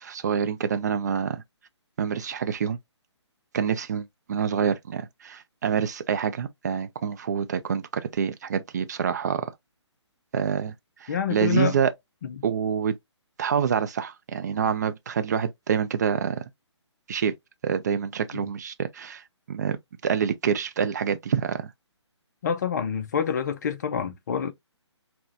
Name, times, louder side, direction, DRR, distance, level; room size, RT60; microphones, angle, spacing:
voice 1, 0.0-1.4 2.0-2.8 3.5-9.5 10.3-10.7 11.0-11.9 12.4-13.0 13.4-16.4 17.1-17.3 17.6-21.7, right 7 dB, 35° right, 0.4 m, -27 dB
voice 2, 11.1-11.8 12.2-12.3 18.3-18.5 22.4-24.5, left 7 dB, 35° left, 0.5 m, -27 dB
5.6 x 2.2 x 2.5 m
figure-of-eight pair, 140°, 15 cm